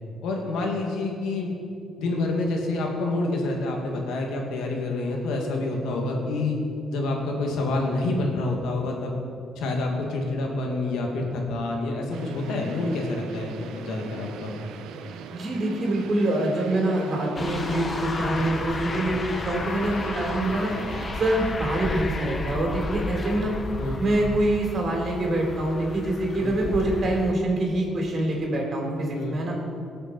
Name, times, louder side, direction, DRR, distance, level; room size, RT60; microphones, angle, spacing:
voice 1, 0.2-1.5 2.0-6.6 6.9-9.1 9.6-14.5 23.8-24.0 26.4-26.5 29.1-29.4, left 2 dB, 85° left, 1 dB, 2.0 m, -27 dB
sound 1, 12.1-21.5, right 6 dB, 90° right, 0.7 m, -41 dB
voice 2, 15.3-20.7 21.2-23.6 24.0-29.6, right 1 dB, 50° right, 0 dB, 3.3 m, -25 dB
sound 2, 17.4-27.3, left 2 dB, 35° left, 1.0 m, -32 dB
18.5 x 6.8 x 4.5 m, 2.5 s
cardioid pair, 90°, 0 cm